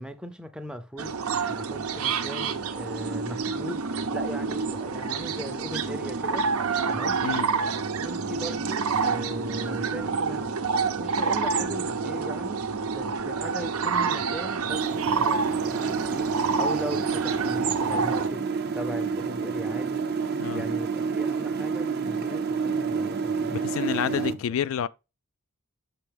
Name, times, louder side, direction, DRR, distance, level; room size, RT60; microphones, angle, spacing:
voice 1, 0.0-6.5 6.9-7.2 8.0-10.6 11.0-20.1 20.5-24.3, equal, 5° right, 0.5 m, -39 dB
sound 1, 1.0-18.3, right 5 dB, 85° right, 0.7 m, -28 dB
sound 2, 14.7-24.3, right 5 dB, 50° right, 0.6 m, -29 dB
voice 2, 23.5-24.9, left 8 dB, 65° left, 0.3 m, -29 dB
6.1 x 5.8 x 3.4 m
head